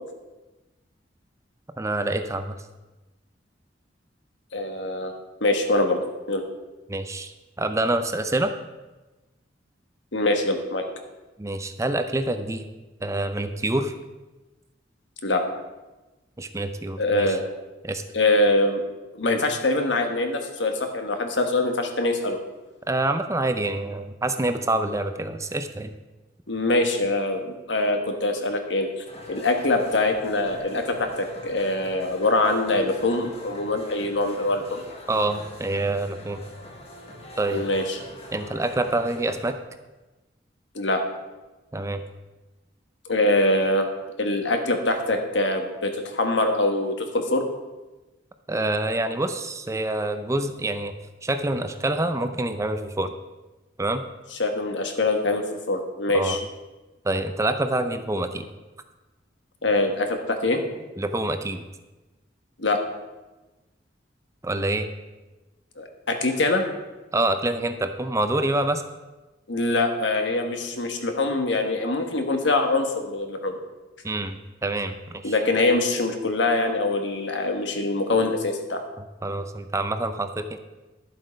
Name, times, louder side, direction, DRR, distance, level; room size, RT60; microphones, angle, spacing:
voice 1, 1.8-2.5 6.9-8.5 11.4-12.7 13.0-13.9 16.4-17.4 17.8-18.0 22.9-25.9 35.1-36.4 37.4-37.6 38.3-39.6 41.7-42.0 48.5-50.9 51.2-53.1 53.8-54.0 56.1-56.4 57.0-58.5 61.0-61.6 64.4-64.9 67.1-68.8 74.0-74.9 75.2-75.3 79.2-80.6, right 2 dB, 15° right, 9 dB, 0.5 m, -26 dB
voice 2, 4.5-5.1 5.4-6.0 6.3-6.4 10.1-10.8 15.2-15.4 17.0-17.4 18.1-18.8 19.1-22.4 26.5-28.9 29.3-34.8 37.5-38.0 40.7-41.0 43.0-43.9 44.2-47.4 54.4-56.4 59.6-60.6 62.6-62.8 65.8-66.6 69.5-73.6 75.2-78.8, left 2 dB, 70° left, 5 dB, 1.4 m, -24 dB
sound 1, 29.1-39.5, equal, 35° left, 1.6 m, -43 dB
11.0 x 7.7 x 5.2 m, 1.1 s
head